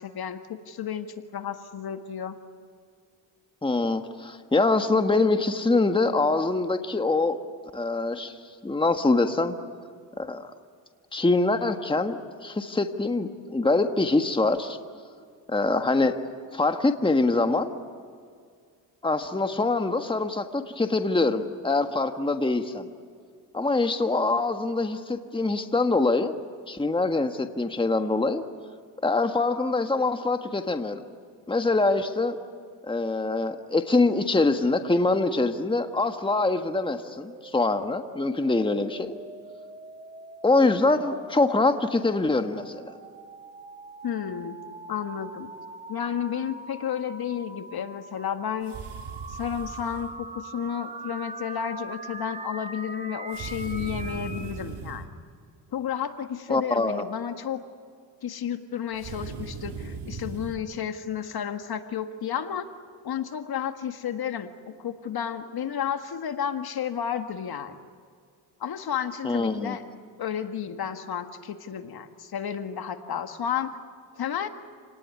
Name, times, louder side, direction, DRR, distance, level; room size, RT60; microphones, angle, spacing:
voice 1, 0.0-2.4 44.0-44.6 44.9-45.5 45.9-48.8 49.3-55.1 55.7-57.6 58.2-62.7 63.0-67.8 68.6-69.8 70.2-73.7 74.2-74.5, left 8 dB, 55° left, 7 dB, 1.8 m, -32 dB
voice 2, 3.6-7.4 7.7-9.5 10.2-10.5 11.1-14.8 15.5-16.1 16.5-17.8 19.0-22.9 23.5-26.3 26.7-28.4 29.0-31.0 31.5-32.4 32.8-39.2 40.4-42.9 56.5-57.0 69.2-69.8, left 3 dB, 10° left, 7 dB, 1.6 m, -24 dB
sound 1, 35.7-54.6, right 2 dB, 15° right, 2.3 m, -43 dB
sound 2, 48.6-50.1 53.3-55.1 58.9-60.6, right 5 dB, 60° right, 2.8 m, -38 dB
29.0 x 19.5 x 9.7 m, 2.2 s
cardioid pair, 80°, 45 cm